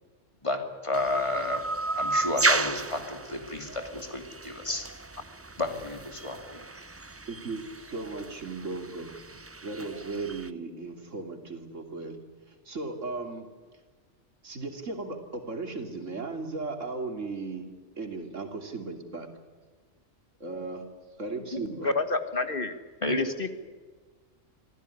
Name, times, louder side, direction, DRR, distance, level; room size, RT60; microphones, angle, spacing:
voice 1, 0.4-1.6 2.0-4.9 5.6-6.6 21.3-21.8 23.0-23.2, left 2 dB, 25° left, 5 dB, 2.9 m, -32 dB
sound 1, 0.9-10.5, right 2 dB, 20° right, 0.4 m, -33 dB
voice 2, 7.3-9.1 9.6-12.2 12.5-13.5 14.4-17.7 18.0-19.3 20.4-20.9 21.2-21.9, right 3 dB, 75° right, 5 dB, 3.2 m, -36 dB
voice 3, 21.8-22.7 23.0-23.5, left 3 dB, 45° left, 9 dB, 1.7 m, -28 dB
25.0 x 15.5 x 10.0 m, 1.5 s
omnidirectional pair, 1.3 m